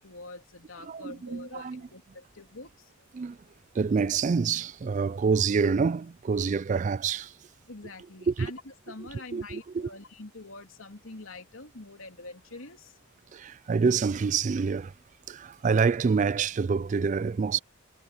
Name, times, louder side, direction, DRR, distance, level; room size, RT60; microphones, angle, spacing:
voice 1, 0.0-2.9 7.7-13.0, left 2 dB, 80° left, 3.0 m, -45 dB
voice 2, 0.8-1.8 3.1-3.4 3.7-7.4 8.3-8.5 9.0-9.9 13.3-14.9 15.3-17.6, right 5 dB, 35° right, 0.3 m, -27 dB
head